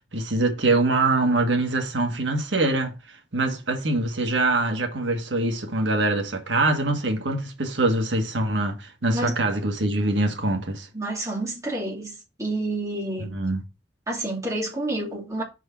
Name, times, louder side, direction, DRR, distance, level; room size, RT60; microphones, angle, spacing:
voice 1, 0.0-2.9 3.3-10.9 13.2-13.6, right 2 dB, 90° right, 1.6 m, -24 dB
voice 2, 10.9-13.3 14.1-15.4, right 2 dB, 15° right, 3.0 m, -29 dB
5.6 x 4.7 x 6.0 m
head